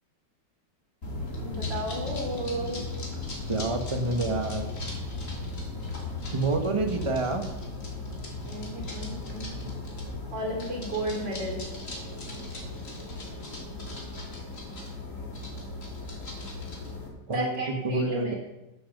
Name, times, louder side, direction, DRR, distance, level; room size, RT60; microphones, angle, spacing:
sound 1, 1.0-17.1, left 2 dB, 40° left, 3.2 m, -36 dB
voice 1, 1.4-2.8 8.4-9.7 10.3-11.6 17.3-18.4, right 1 dB, 65° right, 0 dB, 4.4 m, -33 dB
voice 2, 3.5-4.6 6.3-7.4 17.3-18.3, right 2 dB, 20° right, 5 dB, 1.3 m, -28 dB
11.5 x 11.0 x 6.7 m, 0.97 s
omnidirectional pair, 2.1 m